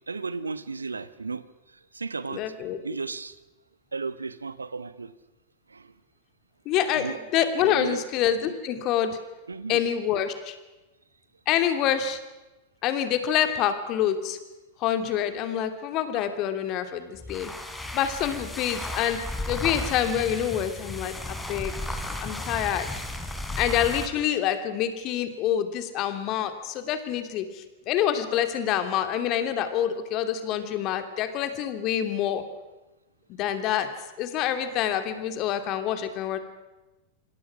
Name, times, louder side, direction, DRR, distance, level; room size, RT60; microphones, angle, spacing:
voice 1, 0.1-1.4 1.9-2.4 2.8-3.3 3.9-5.1 5.7-5.8 6.9-7.2 7.6-8.0 9.5-9.8, right 4 dB, 75° right, 16 dB, 1.0 m, -34 dB
voice 2, 2.3-2.8 6.6-9.2 9.7-10.6 11.5-12.2 12.8-14.4 14.8-17.5 17.9-19.2 19.5-22.9 23.6-32.4 33.3-33.9 34.2-36.4, left 10 dB, 40° left, 8 dB, 2.9 m, -27 dB
sound 1, 17.1-24.2, left 2 dB, 10° left, 3.6 m, -34 dB
26.5 x 26.5 x 6.3 m, 1.1 s
figure-of-eight pair, 90°, 0 cm